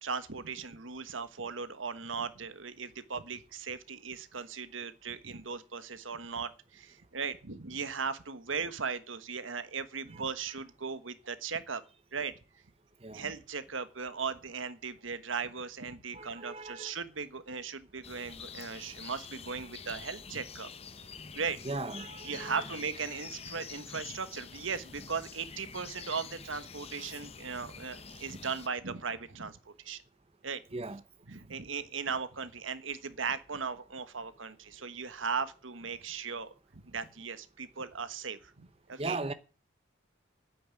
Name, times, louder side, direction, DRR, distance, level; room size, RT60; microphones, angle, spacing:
voice 1, 0.0-11.8 12.1-12.3 13.1-20.7 21.3-21.6 22.2-30.0 30.4-30.6 31.3-39.2, right 5 dB, 80° right, 1.4 m, -38 dB
voice 2, 16.1-17.0 21.6-22.6 30.7-31.0 39.0-39.3, right 2 dB, 30° right, 0.8 m, -38 dB
sound 1, 18.0-28.7, left 6 dB, 30° left, 0.8 m, -47 dB
9.7 x 9.4 x 9.0 m
head